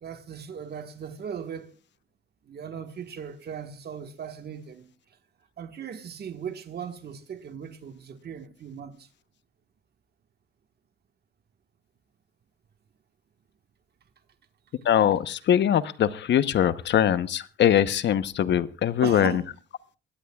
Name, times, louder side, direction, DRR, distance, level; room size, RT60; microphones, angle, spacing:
voice 1, 0.0-1.7 2.5-4.9 5.6-9.1 19.0-19.5, right 7 dB, 55° right, 1.5 m, -38 dB
voice 2, 14.8-19.4, left 10 dB, 65° left, 0.9 m, -22 dB
23.5 x 17.0 x 2.4 m
cardioid pair, 90°, 20 cm